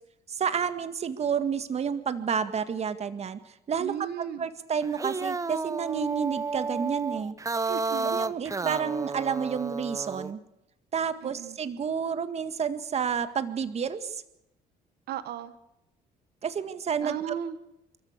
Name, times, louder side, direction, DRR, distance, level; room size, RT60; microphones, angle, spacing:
voice 1, 0.3-3.4 3.7-3.9 4.4-7.4 8.0-10.4 10.9-14.2 16.4-17.4, right 7 dB, 40° right, 11 dB, 1.8 m, -30 dB
voice 2, 3.8-4.4 7.6-8.3 8.6-8.9 11.2-11.6 15.1-15.5 17.0-17.6, right 10 dB, 70° right, 12 dB, 1.6 m, -36 dB
sound 1, 4.8-10.3, right 4 dB, 20° right, 0.9 m, -32 dB
30.0 x 13.5 x 8.3 m, 0.87 s
cardioid pair, 110°, 17 cm